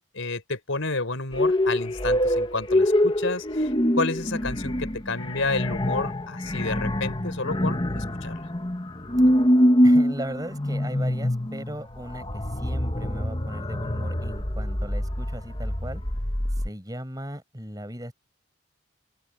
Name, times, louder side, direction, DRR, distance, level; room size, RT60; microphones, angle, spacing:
voice 1, 0.0-8.4, left 3 dB, 80° left, 4.4 m, -30 dB
sound 1, 1.3-16.7, equal, 25° left, 1.3 m, -24 dB
voice 2, 9.8-16.0 16.6-18.1, right 1 dB, 20° right, 5.7 m, -37 dB
open air
head